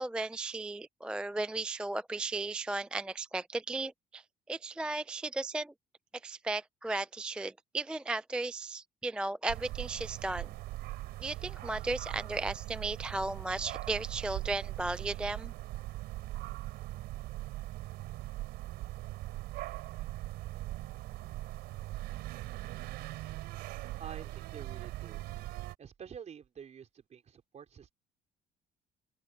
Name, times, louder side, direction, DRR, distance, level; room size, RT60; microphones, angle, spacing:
voice 1, 0.0-5.7 6.2-10.5 11.2-15.5, right 2 dB, 5° right, 0.3 m, -35 dB
sound 1, 9.5-25.7, right 17 dB, 90° right, 3.7 m, -40 dB
voice 2, 24.0-25.2 25.8-27.9, right 7 dB, 45° right, 4.5 m, -48 dB
open air
cardioid pair, 120°, 17 cm